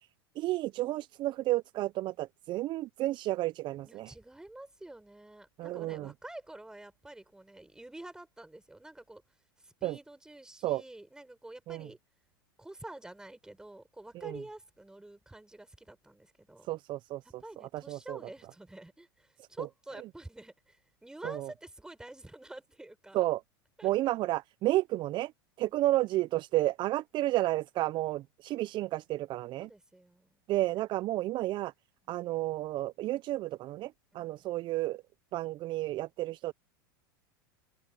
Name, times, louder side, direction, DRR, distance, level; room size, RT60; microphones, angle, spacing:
voice 1, 0.4-4.1 5.6-6.1 9.8-10.0 10.6-10.8 11.7-11.9 14.2-14.4 16.7-17.2 17.7-18.2 19.6-19.7 21.2-21.5 23.1-23.4 23.8-25.3 25.6-29.7 30.5-31.7 32.1-35.0 35.3-36.5, right 16 dB, 40° right, 0.8 m, -31 dB
voice 2, 3.8-9.2 9.6-12.0 12.6-16.7 17.2-23.3 23.8-23.9 29.5-30.4 32.0-32.2, right 1 dB, 5° right, 5.1 m, -49 dB
open air
hypercardioid pair, 100°, 12 cm